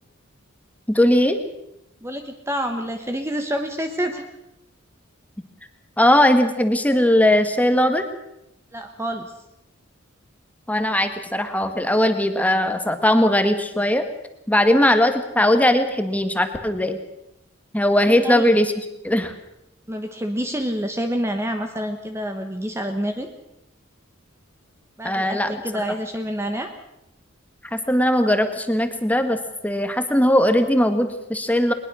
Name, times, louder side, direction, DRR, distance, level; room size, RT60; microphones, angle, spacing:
voice 1, 0.9-1.4 6.0-8.0 10.7-14.0 14.5-17.0 17.7-18.7 19.0-19.3 25.0-25.5 27.7-29.4 29.6-31.7, left 1 dB, 5° left, 8 dB, 1.6 m, -19 dB
voice 2, 2.0-4.2 8.7-9.3 18.0-18.5 19.9-23.3 25.0-26.7, equal, 15° right, 5 dB, 1.2 m, -28 dB
21.0 x 21.0 x 6.3 m, 0.87 s
head